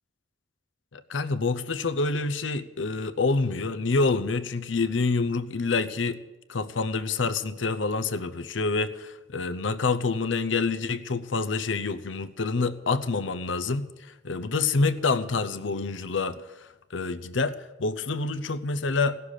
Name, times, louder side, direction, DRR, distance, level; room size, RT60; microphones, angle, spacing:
voice 1, 0.9-6.2 6.5-19.2, left 3 dB, 85° left, 0.8 m, -27 dB
18.0 x 6.9 x 10.0 m
head